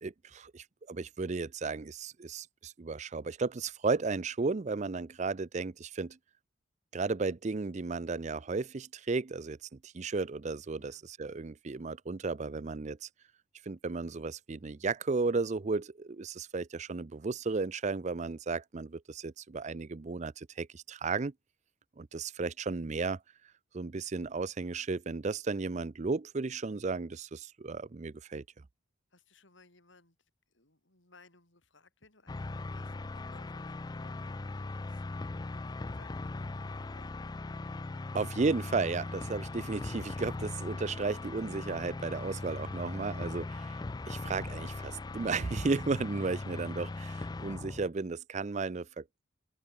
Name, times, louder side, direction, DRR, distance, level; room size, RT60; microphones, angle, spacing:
voice 1, 0.0-6.2 6.9-9.6 9.8-13.1 13.6-21.3 22.0-23.2 23.7-28.4 38.1-49.0, right 4 dB, 35° right, 0.5 m, -34 dB
voice 2, 29.1-37.2, left 3 dB, 75° left, 5.0 m, -62 dB
sound 1, 32.3-47.9, left 2 dB, 20° left, 0.4 m, -39 dB
head